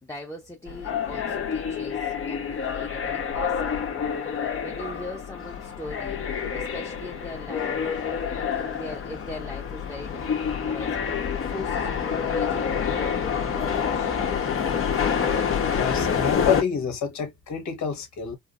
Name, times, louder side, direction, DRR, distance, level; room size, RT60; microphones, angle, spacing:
voice 1, 0.0-4.0 4.3-6.2 6.5-7.8 8.6-14.4, left 1 dB, 10° left, 1.0 m, -40 dB
sound 1, 0.7-16.6, left 7 dB, 45° left, 1.2 m, -27 dB
voice 2, 15.7-18.4, left 6 dB, 70° left, 1.4 m, -28 dB
4.5 x 2.0 x 2.6 m
cardioid pair, 90°, 30 cm